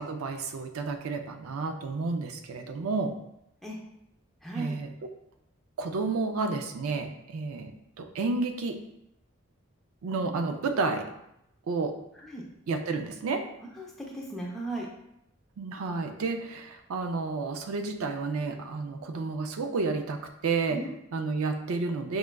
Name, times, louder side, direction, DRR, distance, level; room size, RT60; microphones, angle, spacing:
voice 1, 0.0-3.2 4.5-4.9 5.8-8.8 10.0-11.1 11.7-12.0 12.7-13.4 15.6-20.8 21.1-22.2, right 3 dB, 85° right, 6 dB, 0.4 m, -31 dB
voice 2, 4.4-4.7 12.2-12.4 13.8-14.9 20.7-20.9, right 2 dB, ahead, -3 dB, 0.5 m, -36 dB
4.9 x 2.2 x 2.2 m, 0.80 s
head